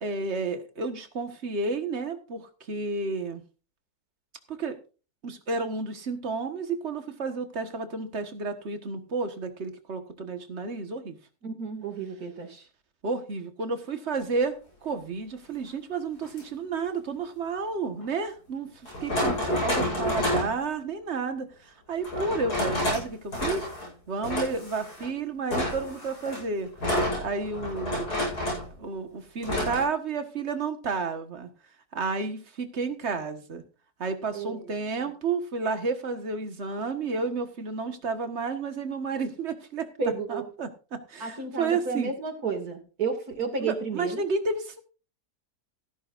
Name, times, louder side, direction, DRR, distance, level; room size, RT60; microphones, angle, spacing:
voice 1, 0.0-3.4 4.5-4.8 5.2-11.2 13.0-23.7 24.1-26.7 27.2-28.1 28.8-31.5 31.9-33.6 34.0-39.9 40.3-42.1 43.6-44.8, right 4 dB, 45° right, 7 dB, 1.7 m, -31 dB
voice 2, 11.4-12.7 34.3-34.7 35.0-35.1 40.0-40.4 41.2-44.2, right 5 dB, 70° right, 5 dB, 2.9 m, -32 dB
sound 1, 16.2-16.4 18.0-18.1 18.8-20.6 22.0-23.0 23.3-23.9 24.2-25.1 25.5-28.7 29.4-29.8, left 1 dB, 85° left, 8.6 m, -29 dB
15.0 x 13.5 x 2.6 m, 0.35 s
omnidirectional pair, 1.7 m